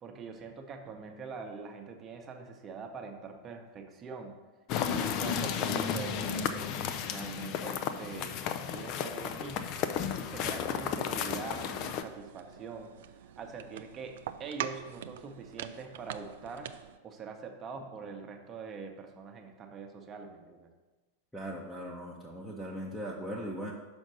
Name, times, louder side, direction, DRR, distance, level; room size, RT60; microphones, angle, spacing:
voice 1, 0.0-4.3 4.8-6.7 7.1-8.3 8.7-9.7 10.2-14.1 14.4-16.7 17.0-20.7, right 5 dB, 25° right, 4 dB, 1.0 m, -43 dB
sound 1, 4.7-12.0, left 8 dB, 40° left, 0.5 m, -33 dB
sound 2, 11.8-17.0, right 10 dB, 55° right, 0.3 m, -43 dB
voice 2, 21.3-23.7, equal, ahead, -4 dB, 0.9 m, -39 dB
6.3 x 5.3 x 6.2 m, 1.2 s
figure-of-eight pair, 90°, 0 cm